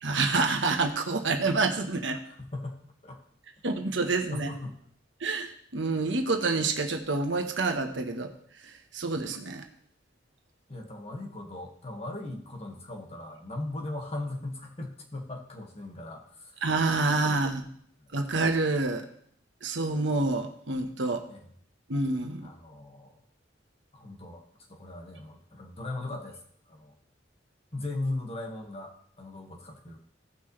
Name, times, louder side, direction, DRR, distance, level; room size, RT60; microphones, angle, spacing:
voice 1, 0.0-2.2 3.6-4.5 5.2-8.3 8.6-9.7 16.6-17.7 18.1-19.1 19.6-21.2 21.9-22.5, right 3 dB, 80° right, 5 dB, 1.2 m, -28 dB
voice 2, 2.2-3.2 4.3-4.8 10.7-16.6 17.3-17.6 18.1-18.2 21.3-21.5 22.4-23.2 23.9-24.4 24.7-26.4 26.7-26.9 27.7-30.0, left 2 dB, 35° left, 1 dB, 1.8 m, -38 dB
17.0 x 5.9 x 3.3 m, 0.62 s
head